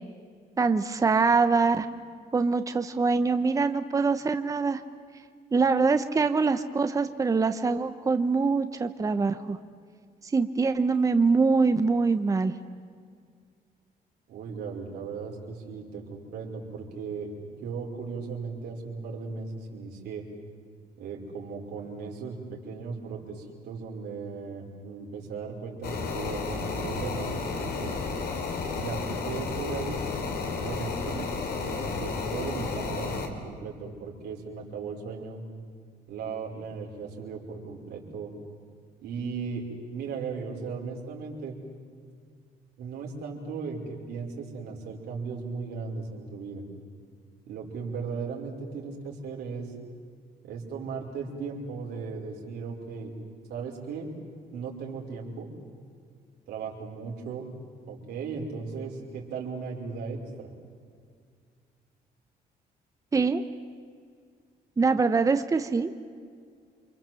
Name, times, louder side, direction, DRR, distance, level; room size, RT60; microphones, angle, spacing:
voice 1, 0.6-1.9 2.3-4.8 5.5-9.6 10.2-12.5 63.1-63.4 64.8-65.9, right 4 dB, 20° right, 9 dB, 0.9 m, -24 dB
voice 2, 14.3-17.3 17.6-20.3 21.0-27.9 28.7-35.4 36.1-38.3 39.0-41.6 42.8-46.6 47.5-49.7 50.4-53.1 53.5-54.1 54.5-55.5 56.5-57.5 57.9-60.5, right 5 dB, 90° right, 0 dB, 5.2 m, -37 dB
sound 1, 25.8-33.3, left 4 dB, 75° left, 3.4 m, -32 dB
29.0 x 25.5 x 7.7 m, 2.1 s
cardioid pair, 130°, 16 cm